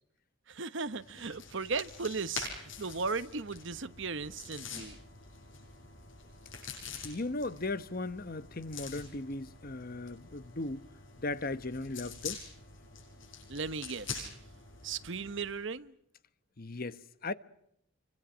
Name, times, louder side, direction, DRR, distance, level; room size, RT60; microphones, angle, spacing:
voice 1, 0.5-5.0 13.5-14.3 14.8-15.9, right 4 dB, 60° right, 1.1 m, -36 dB
sound 1, 0.9-15.6, left 5 dB, 60° left, 8.0 m, -46 dB
voice 2, 7.0-10.8 11.2-12.4 16.6-17.3, left 2 dB, 45° left, 1.0 m, -37 dB
27.5 x 25.5 x 6.2 m
head